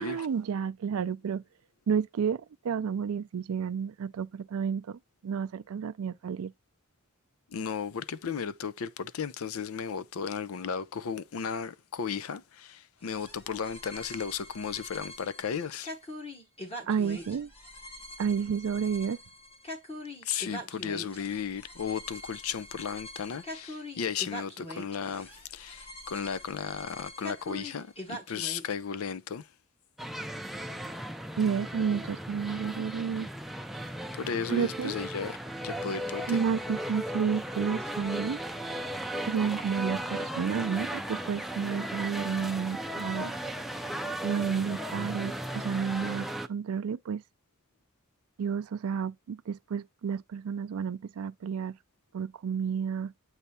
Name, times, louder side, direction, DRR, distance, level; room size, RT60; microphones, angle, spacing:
voice 1, 0.0-1.4 1.9-6.5 16.9-17.5 18.2-19.2 31.4-33.3 34.5-34.9 36.3-38.4 39.3-43.3 44.2-47.2 48.4-51.7 52.1-53.1, right 6 dB, 80° right, 0.4 m, -31 dB
voice 2, 7.5-15.9 20.2-29.5 34.1-35.4 35.6-36.4, left 6 dB, 80° left, 0.5 m, -35 dB
sound 1, 13.0-28.7, left 1 dB, 25° left, 1.2 m, -43 dB
sound 2, 30.0-46.5, right 1 dB, ahead, 0.4 m, -36 dB
8.2 x 3.3 x 4.2 m
head